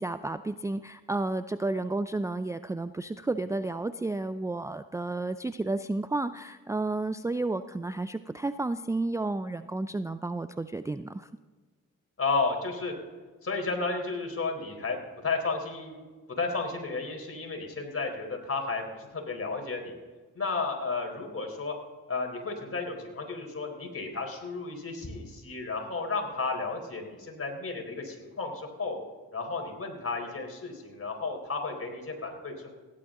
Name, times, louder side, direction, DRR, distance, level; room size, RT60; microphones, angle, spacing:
voice 1, 0.0-11.3, right 2 dB, 10° right, 12 dB, 0.4 m, -32 dB
voice 2, 12.2-12.9 13.4-16.0 16.4-19.9 20.3-21.7 22.1-29.0 29.3-32.7, left 3 dB, 40° left, 2 dB, 4.1 m, -33 dB
16.5 x 11.0 x 3.8 m, 1.3 s
supercardioid pair, 50°, 36 cm